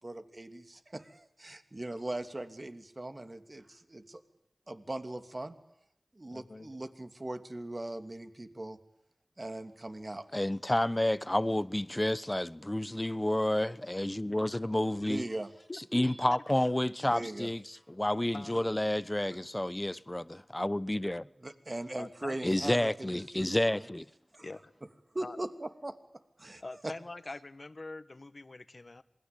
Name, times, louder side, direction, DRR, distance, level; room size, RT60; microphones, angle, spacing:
voice 1, 0.0-4.2 4.7-5.6 6.1-8.8 9.4-10.2 15.0-15.5 17.1-17.5 21.4-23.9 24.3-24.5 25.1-25.9 26.4-26.9, right 1 dB, 40° right, 2.9 m, -40 dB
voice 2, 6.3-6.8 15.7-16.4 18.3-18.7 21.9-22.4 24.4-24.7 25.2-25.4 26.6-29.0, left 2 dB, 55° left, 1.6 m, -44 dB
voice 3, 10.3-15.3 15.9-21.3 22.4-24.1, left 1 dB, 20° left, 1.0 m, -30 dB
Hammer / Chink clink, 16.0-16.8, right 2 dB, 70° right, 6.0 m, -56 dB
27.0 x 21.5 x 8.7 m
cardioid pair, 45°, 0 cm